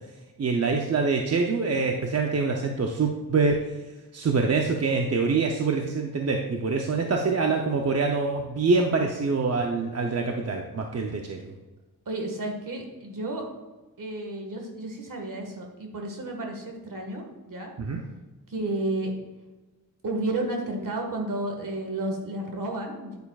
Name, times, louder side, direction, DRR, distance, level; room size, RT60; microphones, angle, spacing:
voice 1, 0.4-3.6 4.1-11.5 17.8-18.0, right 4 dB, 40° right, 2 dB, 0.7 m, -25 dB
voice 2, 12.0-13.5 14.0-17.7 18.5-19.1 20.0-23.2, right 2 dB, 55° right, 2 dB, 1.7 m, -32 dB
9.5 x 8.7 x 2.4 m, 1.2 s
wide cardioid pair, 120°, 38 cm